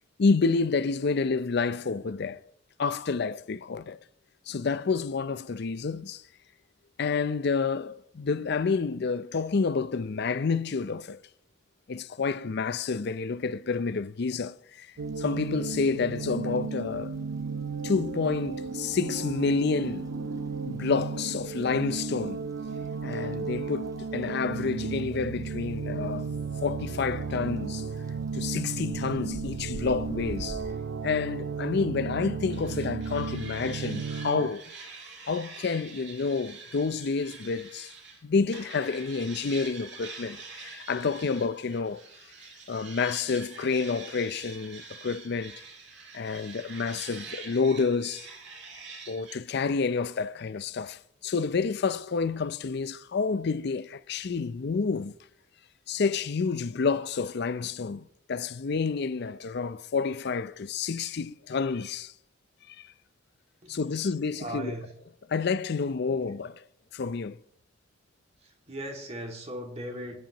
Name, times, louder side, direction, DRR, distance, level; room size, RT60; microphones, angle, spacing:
voice 1, 0.2-2.4 2.8-4.0 4.5-6.2 7.0-11.2 11.9-14.9 15.2-17.2 17.8-20.1 20.7-22.4 23.0-26.3 26.6-27.9 28.3-30.6 31.0-34.7 35.3-37.9 38.2-42.0 42.7-45.6 46.1-48.3 49.1-55.1 55.9-62.1 62.7-62.9 63.7-64.7 65.3-66.6 66.9-67.4, left 4 dB, 55° left, 0.5 m, -29 dB
sound 1, 15.0-30.7, right 1 dB, 15° right, 0.8 m, -47 dB
sound 2, 15.0-34.5, right 5 dB, 90° right, 0.5 m, -34 dB
sound 3, 32.5-38.2 38.5-49.4, right 4 dB, 65° right, 4.1 m, -45 dB
voice 2, 63.6-64.1 64.4-64.9 66.2-66.3 68.4-70.2, right 1 dB, 35° right, 2.3 m, -38 dB
26.5 x 10.5 x 3.0 m
head